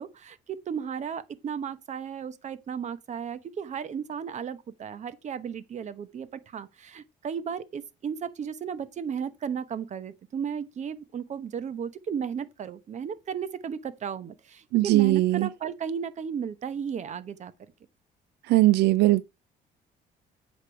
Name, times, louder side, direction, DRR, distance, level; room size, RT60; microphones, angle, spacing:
voice 1, 0.0-17.5, right 7 dB, 45° right, 1.0 m, -34 dB
voice 2, 14.7-15.5 18.5-19.2, right 17 dB, 80° right, 0.4 m, -20 dB
8.2 x 5.2 x 4.6 m
cardioid pair, 110°, 17 cm